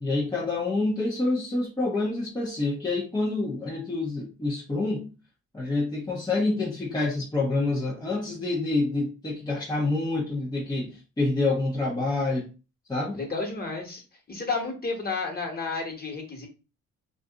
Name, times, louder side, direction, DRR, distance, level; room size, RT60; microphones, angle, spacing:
voice 1, 0.0-5.1 5.5-12.5 12.9-13.2, left 2 dB, 15° left, 0.7 m, -27 dB
voice 2, 13.1-16.5, left 4 dB, 30° left, 1.3 m, -32 dB
2.6 x 2.5 x 3.6 m
cardioid pair, 90°, 30 cm